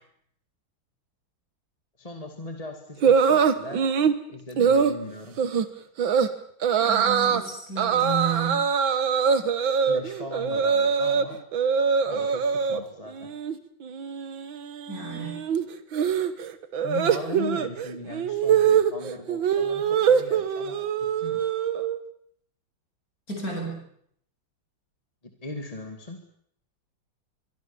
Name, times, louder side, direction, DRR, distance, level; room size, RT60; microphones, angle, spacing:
voice 1, 2.0-3.9 4.3-5.4 9.7-11.4 12.0-13.3 16.8-21.5 25.4-26.2, left 1 dB, 15° left, 4 dB, 2.3 m, -38 dB
sound 1, 3.0-4.2 4.6-4.9 5.4-5.7 6.0-6.3 6.6-7.4 7.8-11.2 11.5-12.8 13.1-13.6 13.8-22.0, right 7 dB, 65° right, 2.1 m, -23 dB
voice 2, 6.8-8.7 14.9-15.4 23.3-23.9, right 4 dB, 40° left, 1 dB, 8.7 m, -32 dB
24.0 x 23.5 x 7.2 m, 0.69 s
omnidirectional pair, 2.3 m